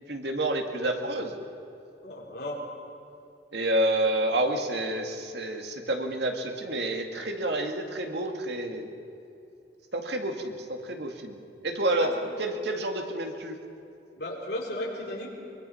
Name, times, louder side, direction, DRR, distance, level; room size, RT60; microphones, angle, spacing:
voice 1, 0.1-1.4 3.5-8.9 9.9-11.4 11.6-13.6, right 1 dB, 70° right, 3 dB, 2.2 m, -29 dB
voice 2, 2.0-2.6 12.0-12.3 14.2-15.3, left 1 dB, 65° left, -2 dB, 4.2 m, -34 dB
23.5 x 23.0 x 5.7 m, 2.7 s
head